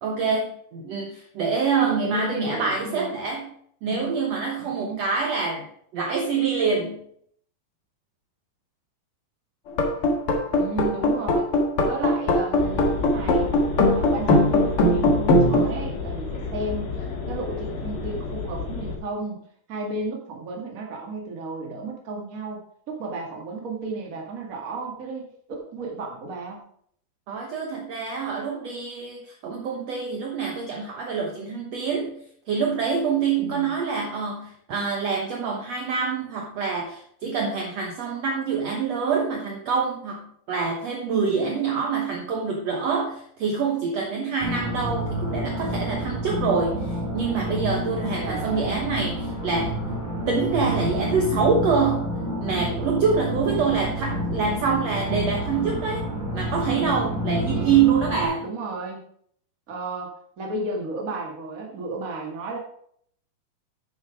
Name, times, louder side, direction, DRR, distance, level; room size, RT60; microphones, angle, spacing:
voice 1, 0.0-3.5 3.8-7.0 27.3-49.8 50.3-52.1 52.4-56.1 56.3-58.4, right 5 dB, 60° right, 0 dB, 1.9 m, -26 dB
voice 2, 1.8-3.1 3.8-4.1 4.6-5.0 10.5-11.4 11.8-13.5 13.9-19.4 19.7-22.6 22.9-26.6 33.4-33.7 48.2-48.7 53.5-53.9 57.4-57.9 58.4-59.0 59.7-62.6, right 3 dB, 30° right, 0 dB, 1.6 m, -33 dB
sound 1, 9.7-15.7, left 1 dB, 50° left, 2.0 m, -20 dB
sound 2, 12.6-19.0, left 4 dB, 85° left, 3.6 m, -31 dB
sound 3, 44.4-58.2, equal, 15° right, 3.4 m, -29 dB
9.7 x 7.1 x 5.0 m, 0.64 s
omnidirectional pair, 4.2 m